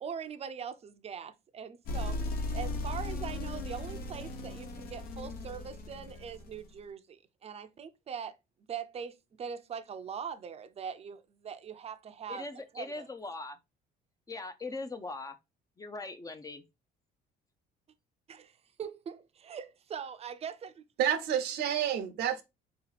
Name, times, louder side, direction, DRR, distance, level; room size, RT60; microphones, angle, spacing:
voice 1, 0.0-2.2 2.5-8.3 8.7-12.5 12.7-13.1 18.3-20.8, right 7 dB, 35° right, 0.6 m, -42 dB
sound 1, 1.9-6.7, left 2 dB, 65° left, 0.9 m, -37 dB
voice 2, 12.3-13.6 14.3-15.4 15.8-16.6, left 3 dB, 20° left, 0.6 m, -40 dB
voice 3, 21.0-22.4, right 10 dB, 75° right, 0.8 m, -29 dB
3.9 x 2.9 x 3.9 m
cardioid pair, 110°, 17 cm